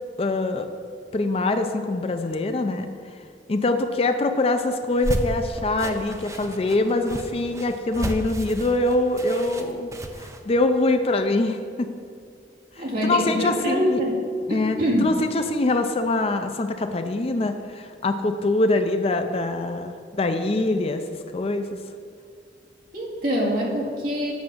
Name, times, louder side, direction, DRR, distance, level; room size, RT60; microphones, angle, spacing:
voice 1, 0.2-0.7 1.1-3.2 3.5-9.9 10.2-11.9 12.8-14.0 14.5-21.0 21.3-21.8, left 2 dB, 35° left, 7 dB, 0.4 m, -24 dB
sound 1, 4.8-10.4, right 1 dB, 15° right, 0.5 m, -32 dB
voice 2, 12.8-14.2 14.5-15.1 22.9-24.3, equal, 50° right, -4 dB, 2.0 m, -24 dB
8.2 x 6.0 x 6.4 m, 2.2 s
head